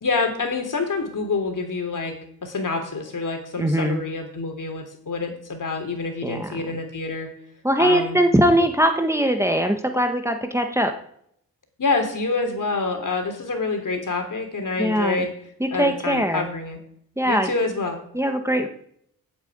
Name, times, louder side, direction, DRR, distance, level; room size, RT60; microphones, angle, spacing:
voice 1, 0.0-2.2 2.4-7.3 7.8-8.2 11.8-15.3 15.7-16.8 17.2-18.0, left 3 dB, 55° left, 4 dB, 3.3 m, -27 dB
voice 2, 3.6-4.0 6.2-6.6 7.6-10.9 14.8-15.2 15.6-16.5 17.2-17.5 18.1-18.7, equal, 5° right, 5 dB, 1.5 m, -21 dB
8.8 x 8.6 x 8.9 m, 0.69 s
cardioid pair, 70°, 37 cm